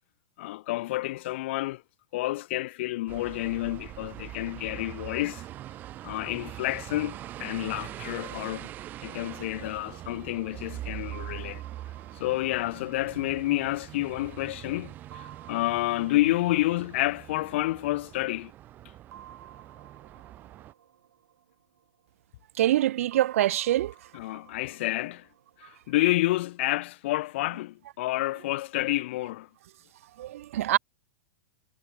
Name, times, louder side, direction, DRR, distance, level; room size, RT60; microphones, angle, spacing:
voice 1, 0.4-1.8 2.1-5.4 6.0-8.7 9.0-11.6 12.1-18.5 24.1-25.3 25.6-29.5, left 17 dB, 45° left, 0.9 m, -29 dB
sound 1, 3.1-20.7, right 13 dB, 20° right, 1.2 m, -43 dB
sound 2, 11.1-14.4 15.1-18.0 19.1-22.2 23.1-26.2, right 10 dB, 80° right, 2.2 m, -54 dB
voice 2, 22.6-23.9 30.2-30.8, right 13 dB, 60° right, 0.5 m, -24 dB
supercardioid pair, 165°, 8 cm